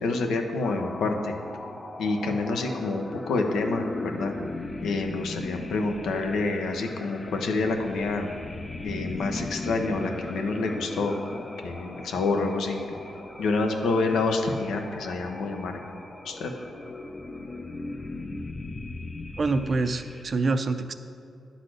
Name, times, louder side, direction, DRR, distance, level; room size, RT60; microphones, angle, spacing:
voice 1, 0.0-1.3 2.0-4.4 4.8-8.3 8.8-12.8 13.4-15.8 16.2-16.5, left 3 dB, 85° left, 4 dB, 0.8 m, -27 dB
sound 1, 0.6-20.2, left 2 dB, 25° left, 0.6 m, -38 dB
voice 2, 19.4-20.9, right 3 dB, 45° right, 10 dB, 0.5 m, -26 dB
10.0 x 4.1 x 6.4 m, 2.4 s
cardioid pair, 95°, 0 cm